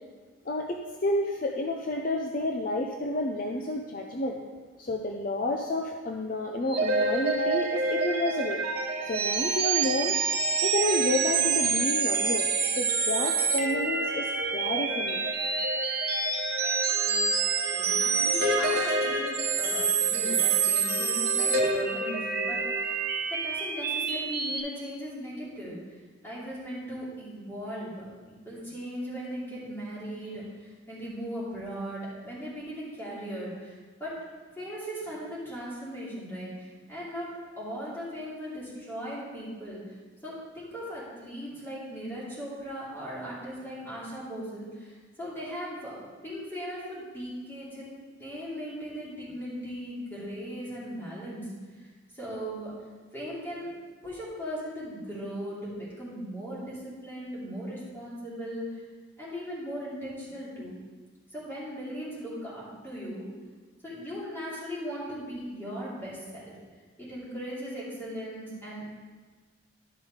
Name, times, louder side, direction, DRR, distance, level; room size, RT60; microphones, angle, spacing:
voice 1, 0.5-4.4 4.8-8.6 9.0-10.2 10.6-15.3, left 2 dB, 45° left, 2 dB, 0.5 m, -30 dB
sound 1, 6.7-24.6, right 4 dB, 50° right, 1.1 m, -27 dB
voice 2, 17.7-23.0 23.3-25.8 26.2-34.2 34.5-37.3 37.6-40.0 40.2-47.9 48.2-51.9 52.1-52.7 53.1-53.7 54.0-58.8 59.2-60.7 61.3-63.3 63.8-66.5 67.0-68.9, equal, 10° left, -9 dB, 2.8 m, -38 dB
11.5 x 5.5 x 4.8 m, 1.4 s
head